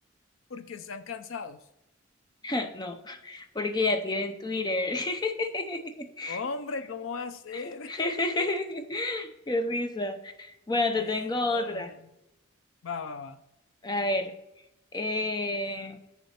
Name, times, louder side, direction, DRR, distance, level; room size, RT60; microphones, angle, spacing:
voice 1, 0.5-1.6 6.3-8.5 11.0-12.1 12.8-13.4, left 4 dB, 70° left, 12 dB, 0.5 m, -38 dB
voice 2, 2.4-6.4 7.5-7.6 7.9-11.9 13.8-14.3 14.9-16.0, left 2 dB, 20° left, 8 dB, 0.5 m, -30 dB
8.5 x 6.9 x 4.2 m, 0.89 s
head